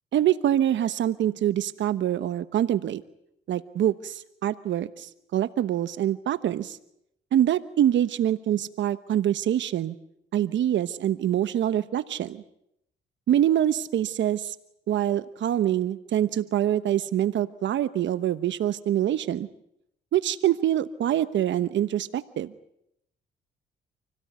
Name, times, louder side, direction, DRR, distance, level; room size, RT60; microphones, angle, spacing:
voice 1, 0.1-3.0 3.5-6.8 7.3-9.9 10.3-12.4 13.3-14.6 14.9-19.5 20.1-22.5, right 11 dB, 70° right, 13 dB, 1.1 m, -25 dB
27.5 x 17.0 x 9.5 m, 0.78 s
cardioid pair, 90°, 20 cm